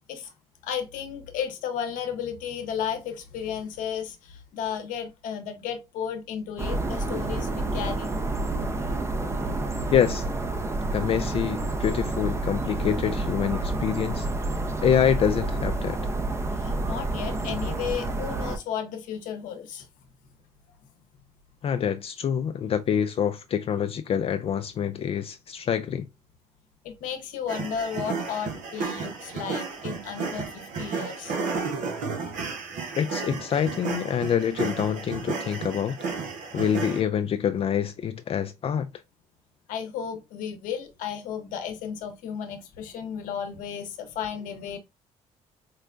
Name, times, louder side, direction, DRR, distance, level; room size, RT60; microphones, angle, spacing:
voice 1, 0.6-8.1 16.6-19.8 26.8-31.3 39.7-44.8, left 8 dB, 75° left, 0.8 m, -33 dB
sound 1, 6.6-18.6, right 2 dB, 20° right, 0.6 m, -29 dB
voice 2, 9.9-10.3 10.9-14.3 14.8-16.0 21.6-26.1 32.9-36.0 36.5-38.9, left 8 dB, 45° left, 0.3 m, -26 dB
sound 2, 27.5-37.0, right 4 dB, 70° right, 0.8 m, -32 dB
4.6 x 2.1 x 2.4 m
supercardioid pair, 65°, 14 cm